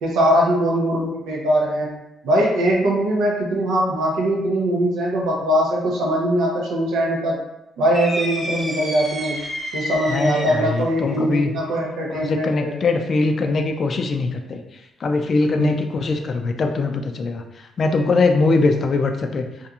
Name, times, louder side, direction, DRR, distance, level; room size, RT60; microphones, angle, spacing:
voice 1, 0.0-1.9 2.2-7.4 7.8-9.4 9.7-12.7 15.6-15.8, right 1 dB, 85° right, -3 dB, 0.5 m, -21 dB
sound 1, 7.9-10.8, equal, 10° right, 0.9 m, -29 dB
voice 2, 10.1-11.6 12.1-14.6 15.0-17.4 17.8-19.5, left 3 dB, 50° left, 5 dB, 0.3 m, -21 dB
2.8 x 2.5 x 2.3 m, 0.90 s
cardioid pair, 90°, 0 cm